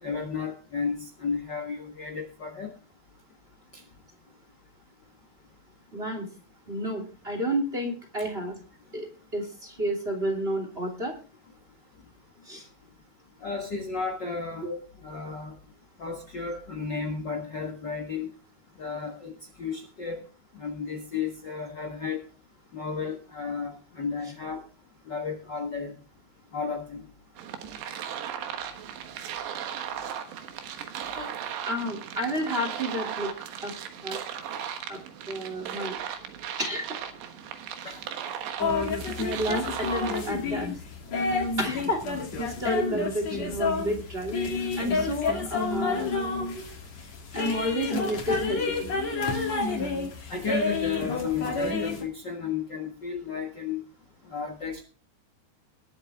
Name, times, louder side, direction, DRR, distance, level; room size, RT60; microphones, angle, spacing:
voice 1, 0.0-2.7 3.7-3.8 8.2-8.3 13.4-14.7 15.0-15.5 16.0-18.3 18.8-19.3 19.6-20.2 20.5-22.2 22.7-24.6 25.1-25.9 26.5-27.0 37.8-38.0 50.3-53.8 54.3-54.8, left 5 dB, 75° left, 4 dB, 1.0 m, -33 dB
voice 2, 5.9-6.3 6.7-8.6 8.9-9.1 9.3-11.1 12.5-12.7 14.6-14.8 31.1-31.3 31.6-33.3 33.6-33.7 34.0-34.2 34.9-35.0 35.3-36.0 36.6-37.0 39.2-40.7 41.6-42.0 42.4-46.1 47.3-48.9, equal, 15° right, 3 dB, 2.5 m, -31 dB
sound 1, 27.4-40.3, right 9 dB, 85° right, 3.6 m, -37 dB
sound 2, 38.6-52.0, left 4 dB, 45° left, 3.7 m, -29 dB
21.0 x 7.8 x 3.6 m, 0.35 s
omnidirectional pair, 4.8 m